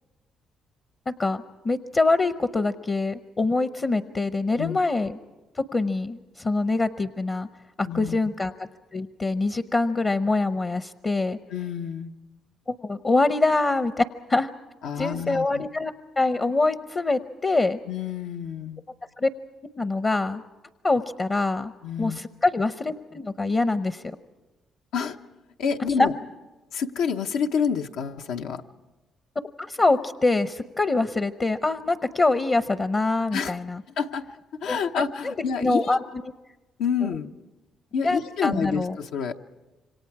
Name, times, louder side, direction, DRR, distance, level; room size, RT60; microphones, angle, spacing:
voice 1, 1.1-5.2 5.7-7.5 7.8-8.5 8.9-11.4 12.7-14.5 15.0-17.8 19.2-19.3 19.8-20.4 20.8-21.7 22.0-24.0 26.0-26.1 29.6-33.8 34.7-34.8 35.2-35.3 35.6-36.0 37.0-37.1 38.0-39.0, left 3 dB, 35° left, 11 dB, 0.7 m, -24 dB
voice 2, 7.9-8.2 11.5-12.1 14.8-15.6 17.9-18.8 21.8-22.2 24.9-25.2 25.6-26.1 26.7-28.6 33.3-33.6 34.0-36.0 36.8-37.3 37.9-39.3, left 6 dB, 85° left, 5 dB, 0.9 m, -28 dB
27.0 x 24.5 x 4.8 m, 1.1 s
cardioid pair, 90°, 0 cm